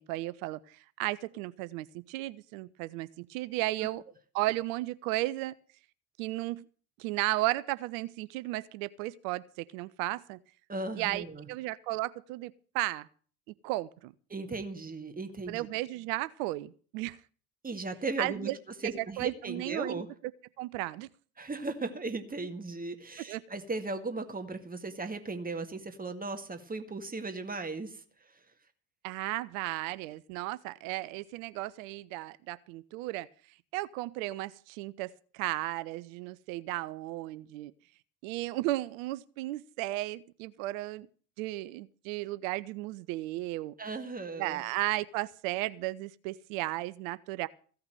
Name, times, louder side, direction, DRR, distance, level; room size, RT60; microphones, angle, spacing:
voice 1, 0.0-4.0 4.3-5.5 6.2-6.6 7.0-10.4 11.0-13.1 13.6-14.1 15.5-17.2 18.2-18.6 19.0-20.0 20.6-21.1 23.3-23.4 29.0-33.3 33.7-37.7 38.2-41.1 41.4-43.7 44.4-47.5, right 18 dB, 60° right, 17 dB, 0.7 m, -34 dB
voice 2, 10.7-11.5 14.3-15.7 17.6-18.5 18.8-20.1 21.4-28.0 43.8-44.6, right 3 dB, 20° right, 7 dB, 2.0 m, -37 dB
15.5 x 5.8 x 9.1 m, 0.43 s
figure-of-eight pair, 65°, 45 cm